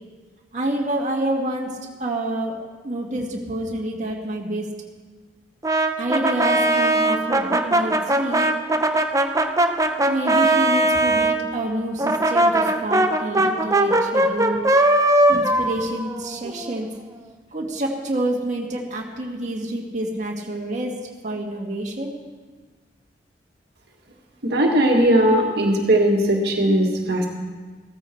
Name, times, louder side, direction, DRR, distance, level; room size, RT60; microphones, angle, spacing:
voice 1, 0.5-2.5 2.8-4.7 6.0-8.5 10.1-14.7 15.3-16.9 17.5-20.9 21.2-22.1, right 1 dB, 45° right, -2 dB, 1.8 m, -28 dB
Brass instrument, 5.6-11.4 12.0-16.8, right 1 dB, 20° right, 0.8 m, -20 dB
voice 2, 24.4-27.3, right 1 dB, 65° right, 0 dB, 1.9 m, -18 dB
15.0 x 14.0 x 4.5 m, 1.4 s
head